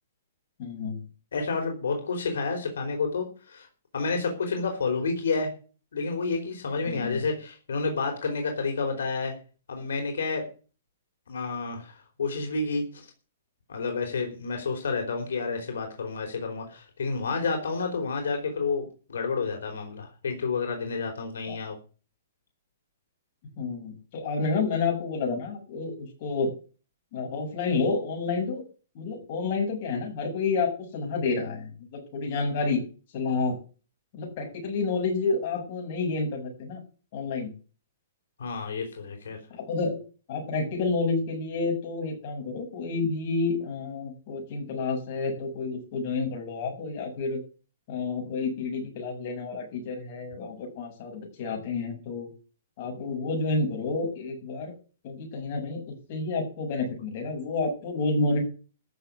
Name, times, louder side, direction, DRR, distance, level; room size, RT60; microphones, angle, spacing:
voice 1, 0.6-1.0 6.9-7.2 21.5-21.6 23.6-26.5 27.1-28.6 28.9-32.8 33.1-33.5 34.2-36.8 37.1-37.5 39.5-40.0 40.3-47.4 47.9-52.3 52.8-54.7 55.0-58.4, left 3 dB, 40° left, 1 dB, 7.6 m, -29 dB
voice 2, 1.3-3.7 3.9-5.5 5.9-9.3 9.7-10.5 11.3-13.1 13.7-21.8 38.4-39.4, left 4 dB, 80° left, 3 dB, 4.5 m, -30 dB
14.0 x 7.0 x 8.4 m, 0.36 s
hypercardioid pair, 160°, 0 cm